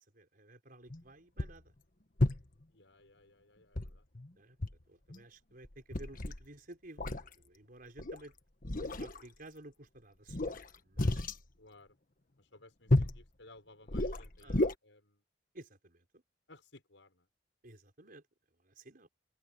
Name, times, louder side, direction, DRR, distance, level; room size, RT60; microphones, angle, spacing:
voice 1, 0.0-1.7 4.4-4.6 4.9-7.1 7.3-8.3 8.8-11.3 14.4-14.6 15.5-16.0 17.6-18.2 18.6-19.1, right 1 dB, 50° right, 5.0 m, -54 dB
sound 1, 0.9-1.0 1.4-1.7 2.2-2.6 3.7-4.3 4.6-4.8 5.1-5.2 5.6-6.4 7.0-7.3 8.0-8.2 8.6-9.2 10.3-11.4 12.9-13.2 13.9-14.7, left 1 dB, 50° left, 1.5 m, -32 dB
voice 2, 2.7-4.0 11.6-11.9 12.4-15.2 16.5-17.3, left 2 dB, 80° left, 6.3 m, -59 dB
open air
head